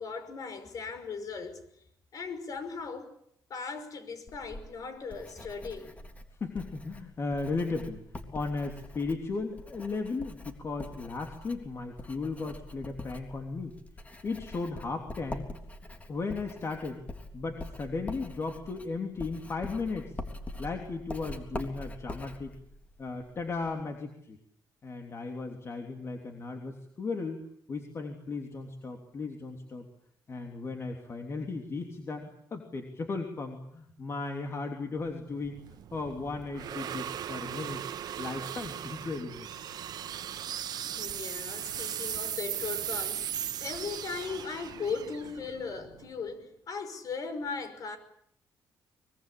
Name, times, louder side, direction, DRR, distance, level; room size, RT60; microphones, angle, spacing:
voice 1, 0.0-1.6 2.1-3.1 3.5-6.0 40.9-48.0, left 5 dB, 55° left, 10 dB, 5.7 m, -38 dB
Writing, 4.3-23.8, left 2 dB, 20° left, 3.6 m, -44 dB
voice 2, 6.4-8.0 8.3-13.7 14.2-15.5 16.1-17.0 17.3-20.1 20.6-22.5 23.0-24.4 24.8-29.8 30.3-35.6 35.9-37.8 38.2-39.5, left 3 dB, 40° left, 4 dB, 3.2 m, -36 dB
sound 1, 35.1-46.3, right 10 dB, 65° right, 1.2 m, -38 dB
24.5 x 22.5 x 8.6 m, 0.70 s
cardioid pair, 110°, 7 cm